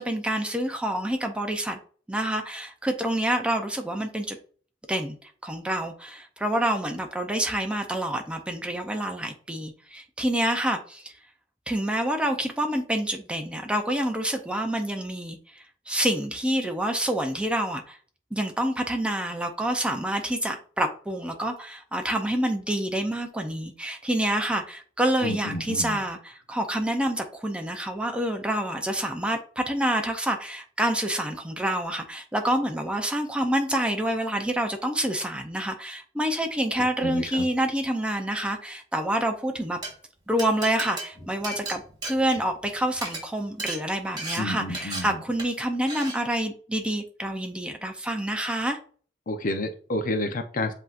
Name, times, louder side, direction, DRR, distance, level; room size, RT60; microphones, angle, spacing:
voice 1, 0.0-1.8 2.1-4.4 4.9-5.2 5.4-11.1 11.7-18.0 18.3-39.8 40.3-48.8, right 1 dB, 5° right, 3 dB, 0.5 m, -27 dB
voice 2, 25.2-26.0 37.0-37.5 44.4-45.2 49.3-50.7, left 1 dB, 45° left, 6 dB, 0.7 m, -30 dB
Glass, 39.6-39.9 40.4-42.7 42.9-43.2 43.6-43.8 44.2-44.4 44.7-45.0 45.4-45.6 45.9-46.1, right 2 dB, 25° right, 2.3 m, -34 dB
7.7 x 2.8 x 2.5 m, 0.43 s
head